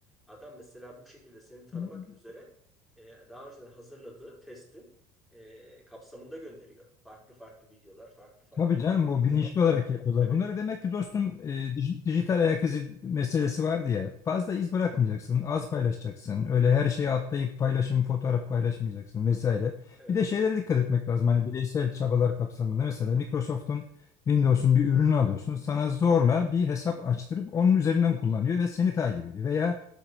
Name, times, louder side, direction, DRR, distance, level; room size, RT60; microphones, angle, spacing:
voice 1, 0.3-2.5 3.0-4.9 5.3-8.6 10.2-10.4 20.0-20.2, equal, ahead, -3 dB, 5.2 m, -49 dB
voice 2, 1.7-2.0 8.6-23.8 24.3-29.9, left 7 dB, 30° left, 6 dB, 1.1 m, -26 dB
12.0 x 8.0 x 6.5 m, 0.68 s
cardioid pair, 130°, 11 cm